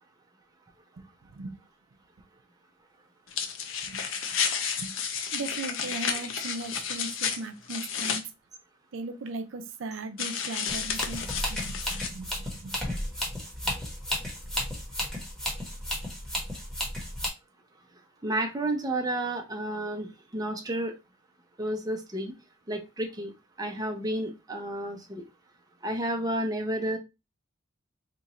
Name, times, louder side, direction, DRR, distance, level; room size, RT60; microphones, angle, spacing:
sound 1, 3.3-8.2 10.2-12.1, left 7 dB, 80° left, 0.6 m, -32 dB
voice 1, 5.3-8.2 8.9-12.7, right 3 dB, 75° right, 8 dB, 0.5 m, -38 dB
sound 2, 10.7-17.3, left 1 dB, 5° left, 1.1 m, -33 dB
voice 2, 18.2-20.9 21.6-22.3 22.7-23.3 23.6-25.2 25.8-27.0, right 1 dB, 20° right, 3 dB, 0.6 m, -31 dB
2.9 x 2.5 x 4.1 m, 0.25 s
head